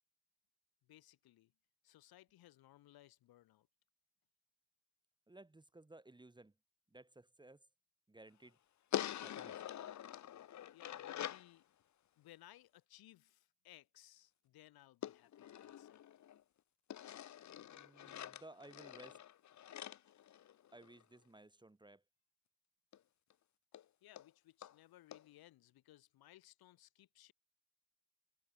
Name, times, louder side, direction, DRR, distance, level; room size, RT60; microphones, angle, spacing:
voice 1, 0.8-1.5 1.8-3.7 10.7-11.7 12.2-16.0 24.0-27.3, left 15 dB, 65° left, 4.6 m, -62 dB
voice 2, 5.3-6.5 6.9-7.7 8.1-8.6 9.2-9.6 17.7-19.2 20.7-22.0, right 2 dB, 10° right, 1.9 m, -58 dB
sound 1, 8.9-11.5 15.0-16.4 16.9-21.0 22.9-23.0 23.3-23.4 23.7-23.8 24.2-24.3 24.6-24.7 25.1-25.2, left 11 dB, 45° left, 1.3 m, -45 dB
supercardioid pair, 75°, 40 cm